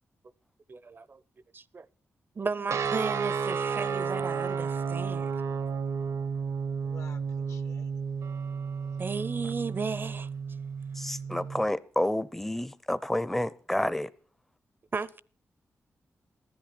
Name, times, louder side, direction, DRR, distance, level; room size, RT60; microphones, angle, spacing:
voice 1, 0.7-1.2 1.5-1.9 2.4-5.3 9.0-10.3 14.9-15.1, right 4 dB, 40° right, 0.5 m, -34 dB
sound 1, 2.7-11.6, right 6 dB, 80° right, 0.8 m, -32 dB
voice 2, 6.8-7.9 8.9-9.0 11.3-11.6 14.9-15.1, left 4 dB, 65° left, 1.1 m, -52 dB
voice 3, 11.0-14.1, left 1 dB, 5° left, 0.5 m, -29 dB
14.5 x 10.5 x 5.7 m
cardioid pair, 65°, 5 cm